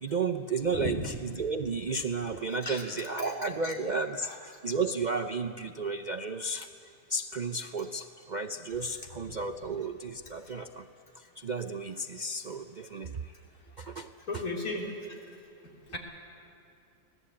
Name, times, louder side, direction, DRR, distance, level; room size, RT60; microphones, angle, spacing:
voice 1, 0.0-6.7 7.1-10.9 11.1-13.3 13.8-14.4, right 4 dB, 55° right, 7 dB, 0.5 m, -33 dB
voice 2, 0.7-1.1 2.6-2.8 3.2-3.3 3.6-3.7 4.2-4.4 9.3-9.4 14.3-15.2 15.9-16.0, left 2 dB, 75° left, -1 dB, 3.9 m, -35 dB
25.5 x 18.5 x 8.6 m, 2.6 s
omnidirectional pair, 1.6 m